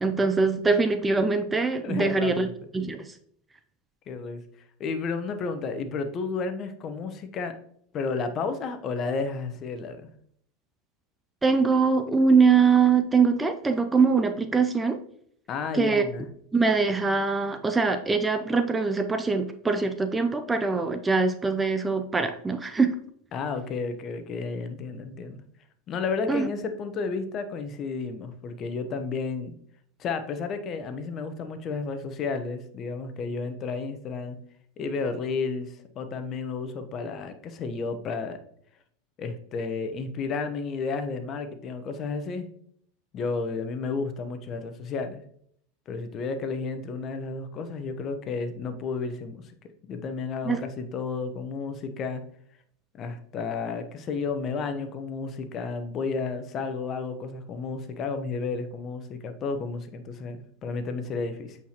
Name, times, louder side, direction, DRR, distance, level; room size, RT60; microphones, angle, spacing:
voice 1, 0.0-2.5 2.7-3.1 11.4-15.0 15.7-16.0 16.5-23.0 26.3-26.5 50.4-50.7, right 4 dB, 15° right, 8 dB, 0.6 m, -23 dB
voice 2, 1.8-2.5 4.1-4.4 4.8-7.5 7.9-10.1 15.5-16.3 23.3-25.4 25.9-29.5 30.0-34.4 34.8-38.4 39.2-42.5 43.1-45.2 45.9-49.5 49.9-52.2 52.9-61.6, left 4 dB, 40° left, 8 dB, 0.9 m, -32 dB
8.1 x 4.7 x 2.9 m, 0.65 s
hypercardioid pair, 95°, 0 cm